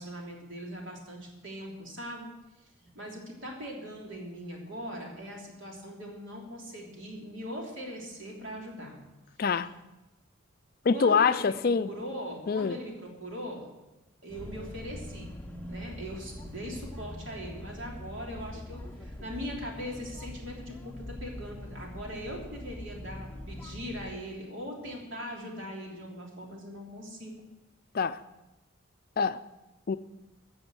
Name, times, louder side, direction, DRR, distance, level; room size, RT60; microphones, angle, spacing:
voice 1, 0.0-2.3 2.6-9.0 9.6-9.8 10.9-11.4 11.8-13.7 14.2-15.3 15.7-27.4, equal, 65° right, 3.4 m, -40 dB
voice 2, 9.4-9.7 10.9-11.9 12.5-12.8 27.9-28.2 29.2-29.4 29.9-30.0, left 5 dB, 45° left, 0.4 m, -25 dB
sound 1, 14.3-24.1, left 1 dB, 10° left, 0.8 m, -43 dB
13.5 x 6.9 x 7.7 m
head